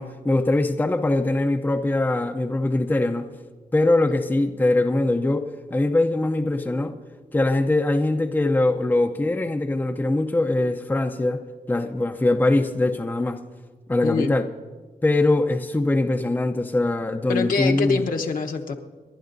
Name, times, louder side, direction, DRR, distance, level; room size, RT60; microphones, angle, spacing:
voice 1, 0.0-3.3 3.7-6.9 7.3-11.4 11.7-13.4 13.9-14.4 15.0-18.0, left 2 dB, 10° left, 0.6 m, -22 dB
voice 2, 14.0-14.3 17.3-18.7, left 5 dB, 65° left, 1.1 m, -24 dB
29.5 x 11.5 x 2.6 m
cardioid pair, 105°, 15 cm